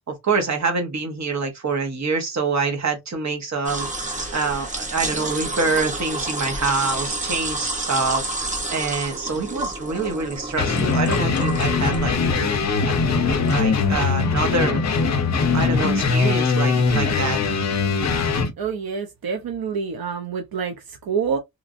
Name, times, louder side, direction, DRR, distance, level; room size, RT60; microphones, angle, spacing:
voice 1, 0.1-12.9 13.3-14.8 15.5-17.4, right 4 dB, 50° right, 1.0 m, -26 dB
sound 1, 3.7-13.6, right 2 dB, 20° right, 0.8 m, -30 dB
sound 2, 10.6-18.5, left 4 dB, 50° left, 0.6 m, -21 dB
voice 2, 18.6-21.4, right 6 dB, 75° right, 0.6 m, -27 dB
2.9 x 2.5 x 2.5 m
wide cardioid pair, 160°, 36 cm